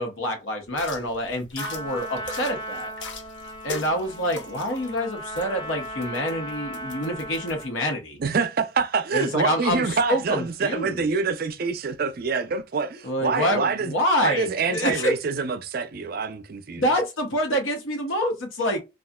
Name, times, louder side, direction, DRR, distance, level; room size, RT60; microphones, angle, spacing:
voice 1, 0.0-2.9 3.6-8.2 9.1-11.1 13.0-15.1 16.8-18.8, equal, 90° left, 1.0 m, -26 dB
sound 1, 0.7-7.6, left 2 dB, 65° left, 0.7 m, -41 dB
Trumpet, 1.6-7.8, equal, 20° left, 0.6 m, -37 dB
voice 2, 8.2-13.9 14.2-16.9, right 5 dB, 50° right, 0.4 m, -26 dB
3.7 x 2.3 x 2.2 m
head